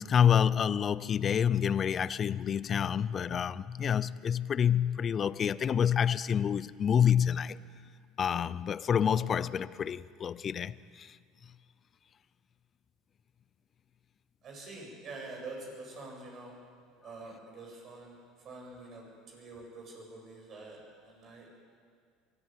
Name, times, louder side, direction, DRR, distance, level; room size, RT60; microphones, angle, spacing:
voice 1, 0.0-7.6 8.2-11.1, left 8 dB, 40° left, 0.6 m, -28 dB
voice 2, 14.4-16.5 17.0-18.2 18.4-21.5, right 3 dB, 45° right, 7.8 m, -46 dB
22.5 x 14.0 x 9.3 m
supercardioid pair, 90°, 0 cm